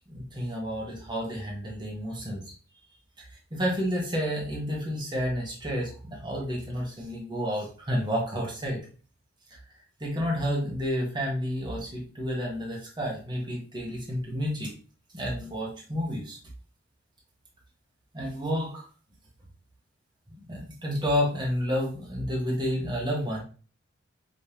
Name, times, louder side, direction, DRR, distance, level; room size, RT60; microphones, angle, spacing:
voice 1, 0.1-2.4 3.2-8.8 9.5-9.6 10.0-14.7 15.1-16.4 18.1-18.8 20.3-23.4, equal, 20° right, -2 dB, 1.2 m, -30 dB
5.1 x 3.2 x 2.9 m, 0.38 s
head